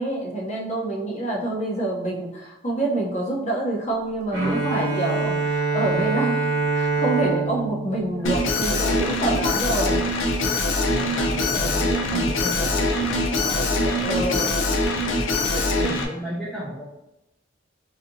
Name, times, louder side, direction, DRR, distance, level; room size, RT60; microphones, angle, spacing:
voice 1, 0.0-6.5 6.7-10.0 13.8-14.6, right 2 dB, 35° left, -1 dB, 0.7 m, -26 dB
Bowed string instrument, 4.3-9.2, right 3 dB, 55° right, 1.0 m, -25 dB
Alarm, 8.3-16.1, left 1 dB, 75° left, 0.5 m, -23 dB
voice 2, 10.9-14.5 15.1-16.8, equal, 5° left, -7 dB, 0.4 m, -34 dB
4.0 x 2.7 x 2.6 m, 0.90 s
head